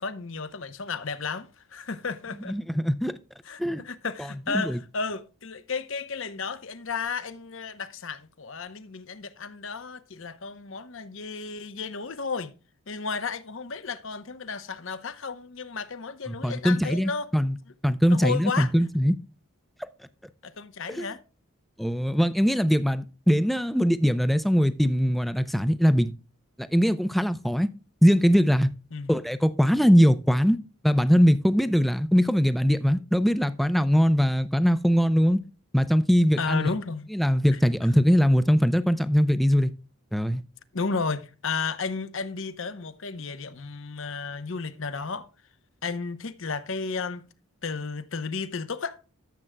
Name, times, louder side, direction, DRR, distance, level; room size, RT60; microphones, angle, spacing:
voice 1, 0.0-2.6 3.4-12.5 12.9-17.3 18.1-18.7 20.4-21.2 28.9-29.1 36.4-37.1 37.5-37.6 40.7-45.3 45.8-47.2 47.6-49.0, left 4 dB, 60° left, 0.8 m, -33 dB
voice 2, 2.5-3.2 3.6-3.8 4.5-4.8 16.3-17.6 17.8-19.2 20.9-21.1 21.8-26.1 26.6-27.7 28.0-28.7 29.1-30.6 30.8-35.4 35.7-36.7 37.1-39.7 40.1-40.4, equal, ahead, 0.5 m, -21 dB
13.5 x 7.7 x 2.2 m
head